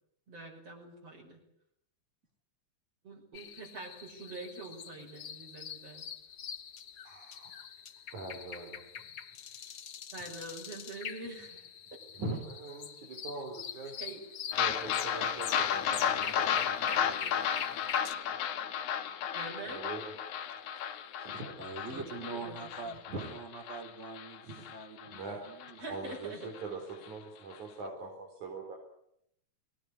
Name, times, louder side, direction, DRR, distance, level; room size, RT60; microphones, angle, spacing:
voice 1, 0.3-1.4 3.0-6.1 10.1-11.6 14.0-14.2 19.3-19.9 21.9-23.0 25.8-26.5, right 2 dB, 55° right, -2 dB, 6.9 m, -45 dB
sound 1, 3.3-18.1, left 8 dB, 55° left, 1.1 m, -44 dB
voice 2, 7.1-7.5 8.1-8.8 12.2-13.9 14.6-17.4 19.7-20.1 21.2-21.6 21.9-22.0 23.1-23.4 24.4-24.7 25.1-25.4 25.9-28.8, right 3 dB, 85° right, 1 dB, 5.9 m, -42 dB
sound 2, 14.5-25.2 25.6-25.7 26.1-26.2 26.6-26.7, left 8 dB, 75° left, 2.6 m, -33 dB
voice 3, 21.3-25.8, right 4 dB, 25° right, 4 dB, 4.5 m, -44 dB
24.0 x 20.5 x 9.8 m, 0.75 s
omnidirectional pair, 3.3 m